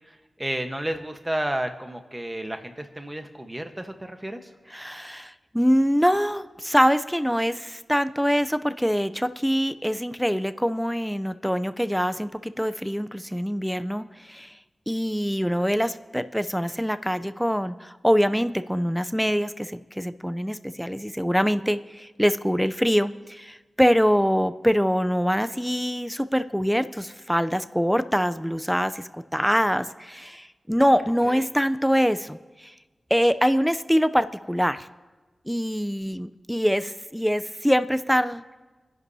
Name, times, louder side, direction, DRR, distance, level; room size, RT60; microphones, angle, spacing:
voice 1, 0.4-4.4 31.2-31.4, right 1 dB, 20° right, 6 dB, 1.2 m, -31 dB
voice 2, 4.7-14.5 14.9-32.7 33.1-34.9 35.5-38.4, equal, ahead, 11 dB, 0.5 m, -24 dB
27.0 x 11.0 x 2.8 m, 1.3 s
wide cardioid pair, 60°, 0 cm